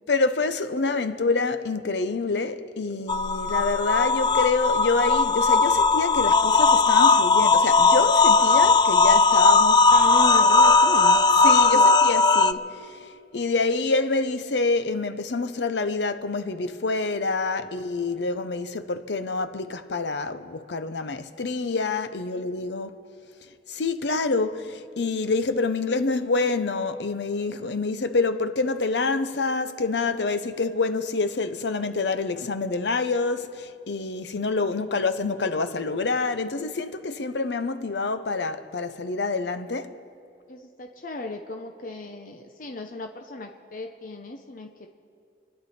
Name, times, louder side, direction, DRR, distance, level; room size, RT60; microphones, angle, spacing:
voice 1, 0.1-9.8 11.4-13.0 13.3-22.9 23.7-39.9, left 3 dB, 85° left, 0.7 m, -27 dB
sound 1, 3.1-12.5, left 4 dB, 25° left, 0.3 m, -18 dB
voice 2, 9.9-11.2 11.7-11.9 34.6-35.0 40.5-44.9, left 2 dB, 50° left, 0.8 m, -36 dB
28.5 x 10.0 x 4.3 m
head